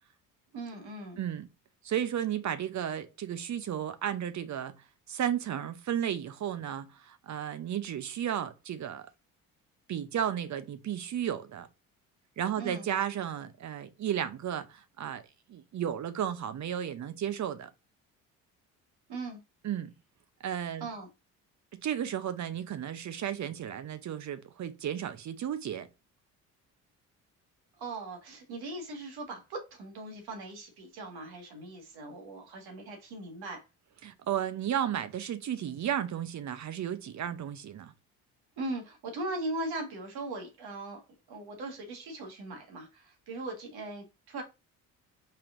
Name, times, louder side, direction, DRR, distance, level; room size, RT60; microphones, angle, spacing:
voice 1, 0.5-1.2 12.6-12.9 19.1-19.4 20.8-21.1 27.8-33.6 38.6-41.0 41.3-44.4, right 2 dB, 60° right, 1.7 m, -39 dB
voice 2, 1.2-1.5 1.8-4.8 5.1-9.1 9.9-11.7 12.4-15.2 15.5-17.7 19.6-19.9 20.4-20.9 21.8-25.9 34.0-37.9, right 10 dB, 45° right, 0.7 m, -33 dB
5.5 x 3.5 x 2.6 m
hypercardioid pair, 55°, 42 cm